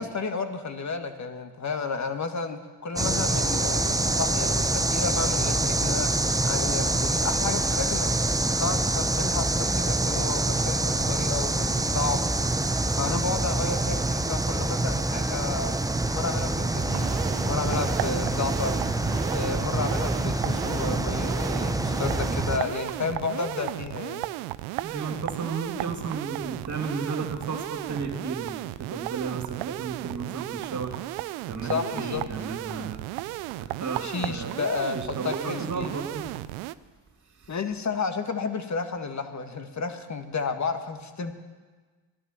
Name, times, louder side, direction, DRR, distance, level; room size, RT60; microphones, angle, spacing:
voice 1, 0.0-6.1 6.4-8.1 8.6-12.3 12.9-15.7 16.1-17.1 17.5-18.8 19.3-24.3 31.6-32.2 34.0-35.9 37.5-41.3, left 4 dB, 35° left, 8 dB, 1.5 m, -31 dB
sound 1, 3.0-22.6, right 2 dB, 5° right, 0.8 m, -26 dB
sound 2, 16.8-36.7, right 17 dB, 80° right, 0.6 m, -35 dB
voice 2, 24.8-31.0 31.5-33.0 33.6-34.6 34.9-36.4 37.4-37.5, right 4 dB, 35° right, 1 dB, 3.1 m, -33 dB
14.5 x 11.0 x 6.9 m, 1.4 s
hypercardioid pair, 50°, 48 cm